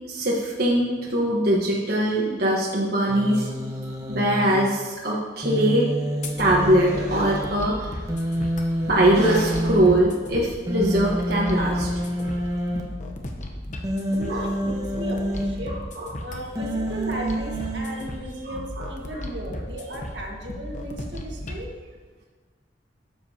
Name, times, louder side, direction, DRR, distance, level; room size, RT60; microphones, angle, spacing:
voice 1, 0.1-3.5 4.1-5.8 6.4-7.9 8.8-11.9 12.2-12.4 14.3-14.5 15.7-16.1 18.4-19.2, right 1 dB, 55° right, -4 dB, 1.3 m, -22 dB
Human voice, 3.1-4.6 5.4-7.4 8.1-10.0 10.7-12.8 13.8-15.4 16.6-17.8, equal, 20° right, 1.1 m, -28 dB
sound 1, 6.2-21.6, left 1 dB, 40° left, 0.9 m, -36 dB
voice 2, 14.1-15.8 16.2-21.7, right 1 dB, 75° right, -1 dB, 1.6 m, -35 dB
12.5 x 7.6 x 2.9 m, 1.4 s
head